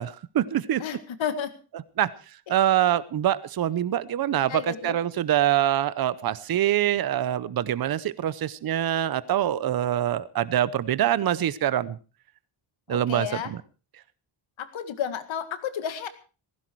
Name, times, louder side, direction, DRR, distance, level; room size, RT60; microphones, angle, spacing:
voice 1, 0.0-0.8 2.0-2.1 2.5-12.0 12.9-13.6, right 11 dB, 50° right, 18 dB, 0.8 m, -25 dB
voice 2, 0.8-1.5 4.5-5.0 12.9-13.5 14.6-16.1, left 8 dB, 70° left, 10 dB, 2.1 m, -32 dB
16.0 x 15.5 x 4.7 m, 0.35 s
wide cardioid pair, 150°, 48 cm